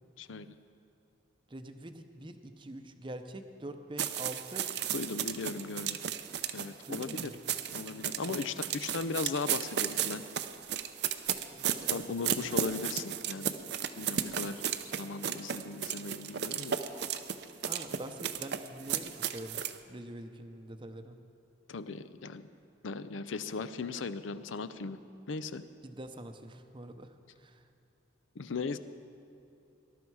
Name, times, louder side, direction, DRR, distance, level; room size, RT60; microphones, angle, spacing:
voice 1, 1.5-4.7 6.9-7.4 8.3-8.4 8.9-9.0 11.5-12.5 17.6-19.6 19.9-21.2 25.8-27.1 27.4-27.6, right 1 dB, 25° right, 7 dB, 0.7 m, -45 dB
sound 1, 4.0-19.8, right 9 dB, 55° right, 0.6 m, -34 dB
voice 2, 4.9-6.0 6.5-7.3 7.7-10.2 11.9-13.5 14.0-14.6 15.0-16.8 21.7-22.5 22.8-25.0 25.3-25.6 28.4-28.8, left 4 dB, 80° left, 13 dB, 0.6 m, -37 dB
19.5 x 11.5 x 4.7 m, 2.8 s
head